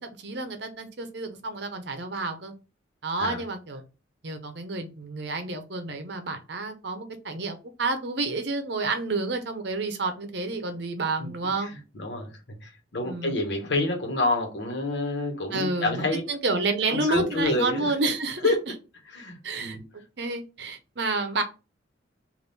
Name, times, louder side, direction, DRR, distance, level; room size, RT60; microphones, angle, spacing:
voice 1, 0.0-2.5 3.0-3.8 4.2-11.7 13.0-13.4 15.5-18.5 19.4-19.8 20.2-21.4, right 3 dB, 60° right, 0.7 m, -29 dB
voice 2, 11.2-12.3 12.6-16.2 16.9-17.9 18.4-18.6 19.1-19.8, left 2 dB, 65° left, 1.2 m, -28 dB
3.5 x 2.6 x 4.0 m
head